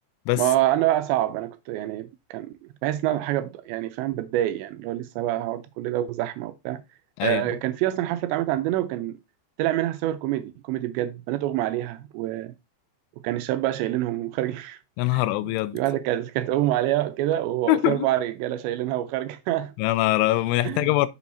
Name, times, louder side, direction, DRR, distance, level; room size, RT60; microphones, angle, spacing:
voice 1, 0.4-2.5 2.8-6.8 7.2-9.1 9.6-12.5 13.2-14.8 15.1-19.7 20.6-20.9, right 14 dB, 85° right, 2.6 m, -26 dB
voice 2, 15.0-15.8 17.7-18.1 19.8-21.1, left 17 dB, 90° left, 3.1 m, -23 dB
7.3 x 6.9 x 2.6 m
omnidirectional pair, 5.4 m